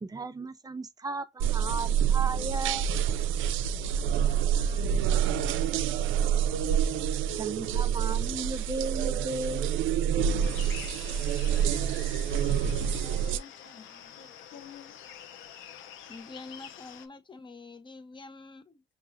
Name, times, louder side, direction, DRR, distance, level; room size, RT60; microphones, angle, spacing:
voice 1, 0.0-2.9 7.4-9.7, right 2 dB, 20° right, 0.5 m, -35 dB
sound 1, 1.4-13.4, right 8 dB, 85° right, 0.4 m, -27 dB
voice 2, 3.9-6.4 12.4-15.0, left 4 dB, 70° left, 1.3 m, -52 dB
sound 2, 10.4-17.1, left 9 dB, 90° left, 0.6 m, -47 dB
voice 3, 16.1-18.8, left 3 dB, 25° left, 0.7 m, -46 dB
6.0 x 2.4 x 2.5 m
cardioid pair, 90°, 20 cm